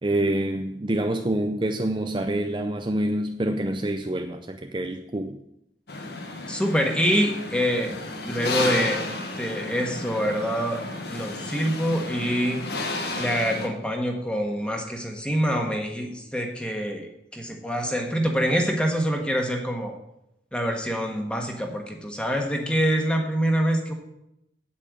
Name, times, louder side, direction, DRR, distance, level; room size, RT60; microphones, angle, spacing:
voice 1, 0.0-5.4, right 1 dB, 25° right, 0.5 m, -26 dB
sound 1, 5.9-13.7, left 2 dB, 65° left, 1.4 m, -32 dB
voice 2, 6.5-7.9 8.2-9.0 9.4-10.8 11.1-12.6 13.2-19.9 20.5-23.9, equal, 5° left, 1.5 m, -25 dB
8.9 x 8.6 x 6.3 m
head